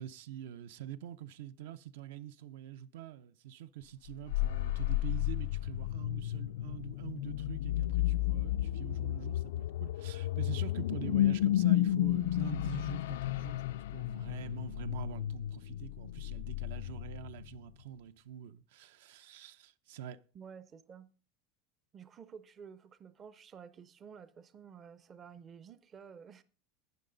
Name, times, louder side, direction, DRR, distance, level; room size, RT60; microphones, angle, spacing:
voice 1, 0.0-20.2, right 11 dB, 70° right, 0.6 m, -45 dB
sound 1, 4.1-17.6, left 14 dB, 85° left, 0.4 m, -32 dB
voice 2, 20.3-21.1 21.9-26.4, right 7 dB, 20° right, 0.5 m, -52 dB
12.0 x 9.2 x 3.9 m
supercardioid pair, 170°, 0 cm